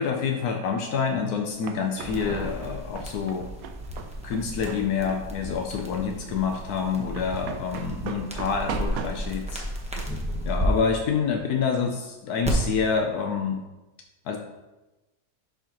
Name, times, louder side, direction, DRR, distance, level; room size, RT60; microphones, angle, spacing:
voice 1, 0.0-3.5 4.2-9.6 10.4-13.6 14.3-14.4, left 6 dB, 80° left, 3 dB, 1.2 m, -27 dB
sound 1, 1.1-11.5, right 6 dB, 70° right, 1.0 m, -40 dB
sound 2, 2.0-10.7 12.4-12.5, equal, 5° right, 0.8 m, -34 dB
11.0 x 4.6 x 2.9 m, 1.1 s
omnidirectional pair, 1.6 m